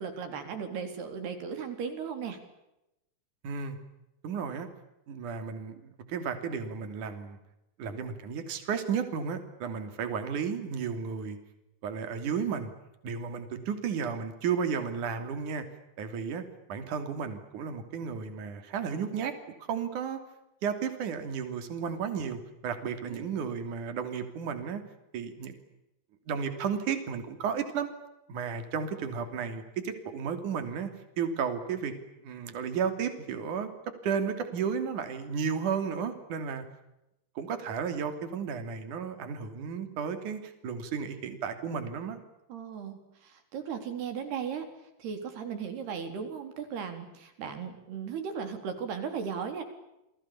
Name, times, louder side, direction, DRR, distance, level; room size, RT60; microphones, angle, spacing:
voice 1, 0.0-2.4 23.1-23.5 42.5-44.7 45.0-49.6, right 6 dB, 80° right, 7 dB, 6.0 m, -36 dB
voice 2, 3.4-3.8 4.2-4.7 5.1-7.4 7.8-11.4 11.8-12.7 13.0-15.6 16.0-19.3 19.6-20.2 20.6-24.8 25.1-25.5 26.3-27.9 28.3-31.9 32.2-33.7 34.0-36.6 37.4-42.2, right 6 dB, 55° right, 8 dB, 4.2 m, -33 dB
29.5 x 21.5 x 8.7 m, 0.89 s
omnidirectional pair, 4.5 m